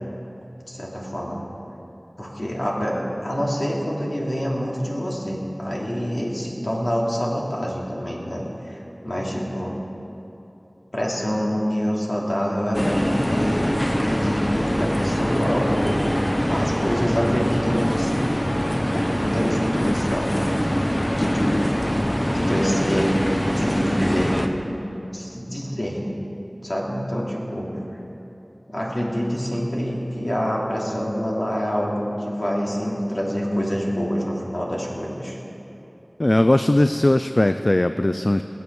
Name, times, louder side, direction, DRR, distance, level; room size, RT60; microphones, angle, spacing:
voice 1, 0.6-1.4 2.2-9.7 10.9-16.1 16.5-18.2 18.9-20.3 21.1-21.7 22.0-23.1 23.5-24.8 25.1-26.0 26.6-27.8 28.7-35.4, equal, 65° left, -4 dB, 2.9 m, -26 dB
sound 1, 12.7-24.5, equal, 20° left, 1.1 m, -23 dB
voice 2, 36.2-38.4, left 1 dB, 50° left, 9 dB, 0.4 m, -19 dB
20.5 x 8.0 x 7.0 m, 2.9 s
wide cardioid pair, 40°, 0 cm